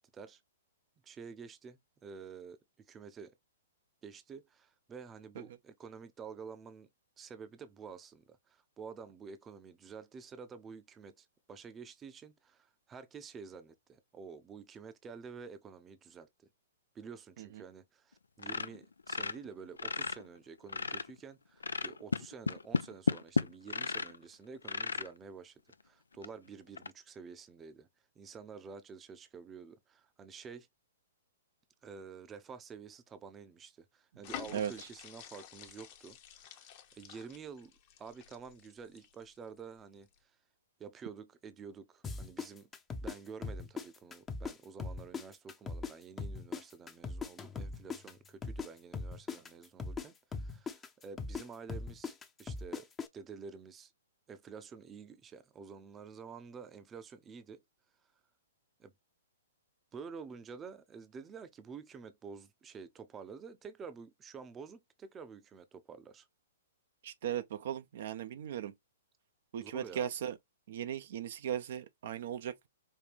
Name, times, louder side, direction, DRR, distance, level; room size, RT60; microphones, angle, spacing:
voice 1, 1.0-2.6 2.9-3.3 4.0-6.9 7.2-16.3 16.9-27.9 28.2-30.7 31.8-37.7 38.0-40.3 40.8-42.7 43.0-53.9 54.3-57.6 58.8-58.9 59.9-66.3 69.6-70.1, right 6 dB, 20° right, 0.6 m, -49 dB
sound 1, 18.4-20.2 20.5-21.2 21.6-24.2 24.6-25.1 25.7-25.8 26.2-26.3 26.8-26.9, left 4 dB, 85° left, 0.3 m, -33 dB
sound 2, 34.2-39.6 40.0-40.2, left 10 dB, 45° left, 1.0 m, -50 dB
sound 3, 42.0-44.5 44.8-48.7 48.9-53.1, left 4 dB, 15° left, 0.7 m, -40 dB
voice 2, 67.0-68.7 69.5-70.3 70.7-72.7, right 9 dB, 60° right, 0.6 m, -37 dB
5.3 x 2.2 x 3.3 m
hypercardioid pair, 125°, 0 cm